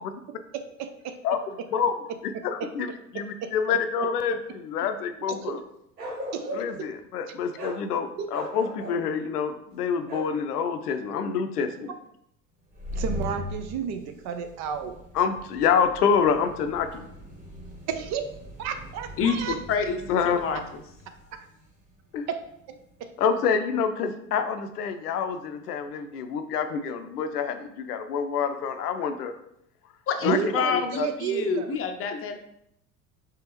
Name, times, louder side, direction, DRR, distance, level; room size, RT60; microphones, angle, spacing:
voice 1, 0.8-1.1 2.6-2.7 3.4-3.5 5.3-5.5 6.3-6.5 6.8-6.9 8.2-8.3 11.8-11.9 12.9-15.0 17.9-18.2 18.6-19.6 21.3-21.5 22.3-23.1 30.2-31.7, right 8 dB, 40° right, 8 dB, 0.4 m, -32 dB
voice 2, 2.4-5.6 6.5-11.9 15.2-16.9 20.1-20.4 22.1-22.3 23.2-29.3 30.2-30.4 30.7-31.1 32.1-32.2, left 6 dB, 80° left, 9 dB, 0.6 m, -27 dB
Bark, 6.0-6.9 7.6-7.8 8.3-9.0 10.1-10.3, equal, 85° right, 1.0 m, -36 dB
sound 1, 12.6-23.1, left 1 dB, 15° right, 1.6 m, -41 dB
voice 3, 19.2-20.8 30.1-32.4, left 5 dB, 30° left, 6 dB, 0.6 m, -28 dB
4.6 x 3.4 x 3.0 m, 0.77 s
hypercardioid pair, 75°, 46 cm